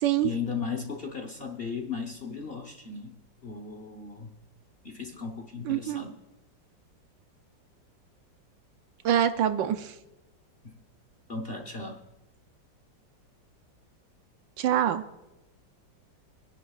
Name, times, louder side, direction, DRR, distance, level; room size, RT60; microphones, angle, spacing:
voice 1, 0.2-3.2 3.4-4.3 4.8-6.1 10.6-10.8 11.3-12.0, left 5 dB, 40° left, 4 dB, 0.9 m, -36 dB
voice 2, 5.6-6.0 9.0-9.9 14.6-15.0, right 10 dB, 80° right, 10 dB, 1.4 m, -25 dB
26.5 x 10.5 x 2.4 m, 1.0 s
omnidirectional pair, 2.0 m